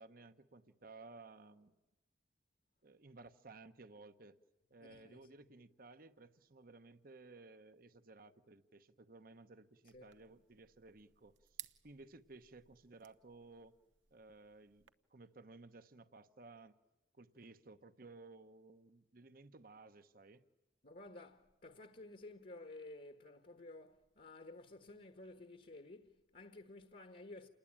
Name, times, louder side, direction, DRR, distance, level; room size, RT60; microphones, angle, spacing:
voice 1, 0.0-1.7 2.8-4.4 4.7-11.4 11.8-13.7 14.1-16.8 17.2-20.4, right 3 dB, 50° right, 1.0 m, -57 dB
voice 2, 4.8-5.5 9.9-10.1 20.8-27.5, left 2 dB, 50° left, 1.4 m, -54 dB
sound 1, 9.9-14.9, right 14 dB, 85° right, 1.1 m, -59 dB
28.5 x 20.0 x 8.8 m
head